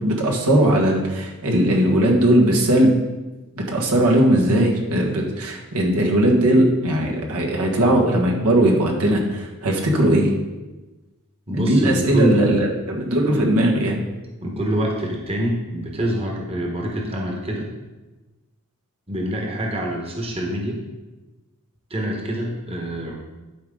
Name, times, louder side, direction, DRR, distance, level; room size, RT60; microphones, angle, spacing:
voice 1, 0.0-3.0 3.6-10.3 11.5-14.0, right 1 dB, 80° right, 0 dB, 1.5 m, -18 dB
voice 2, 11.5-12.6 14.4-17.6 19.1-20.8 21.9-23.2, right 1 dB, 25° right, 0 dB, 1.2 m, -25 dB
11.5 x 4.9 x 3.8 m, 1.1 s
head